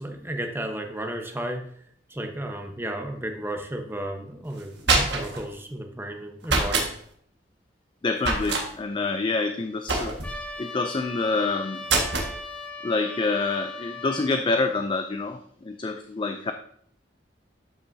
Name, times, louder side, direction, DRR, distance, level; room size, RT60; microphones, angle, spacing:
voice 1, 0.0-1.6 2.1-6.9, right 1 dB, 15° right, 3 dB, 1.0 m, -33 dB
sound 1, 4.6-5.4 6.4-6.9 8.2-8.7 9.9-10.4 11.9-12.3, right 3 dB, 70° right, 1.6 m, -24 dB
voice 2, 8.0-10.2 10.6-11.8 12.8-16.5, left 3 dB, 25° left, 7 dB, 0.4 m, -27 dB
Trumpet, 10.2-14.4, left 2 dB, 10° left, 1.5 m, -38 dB
12.0 x 5.8 x 2.7 m, 0.64 s
head